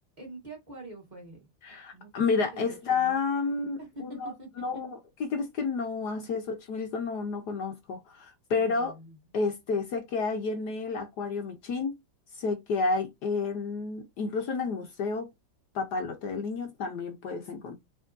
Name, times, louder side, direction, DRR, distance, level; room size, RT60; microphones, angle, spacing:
voice 1, 0.2-1.4 1.9-3.1 3.8-4.6 6.2-6.3 8.5-9.2, right 2 dB, 25° right, 1.8 m, -45 dB
voice 2, 1.6-8.9 9.3-11.9 12.4-15.3 15.7-17.7, left 4 dB, 65° left, 1.3 m, -30 dB
4.9 x 3.6 x 2.6 m
omnidirectional pair, 2.1 m